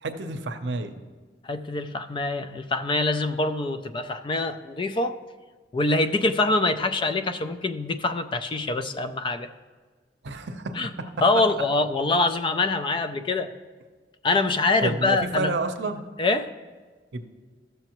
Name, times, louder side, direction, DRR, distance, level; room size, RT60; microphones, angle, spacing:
voice 1, 0.0-0.9 10.2-10.8 14.8-16.0 17.1-17.2, right 2 dB, 75° right, 7 dB, 0.7 m, -29 dB
voice 2, 1.4-5.2 5.7-9.5 10.8-10.9 11.2-13.5 14.2-15.5 16.2-16.5, left 2 dB, 30° left, 10 dB, 0.3 m, -24 dB
13.5 x 6.8 x 3.0 m, 1.4 s
head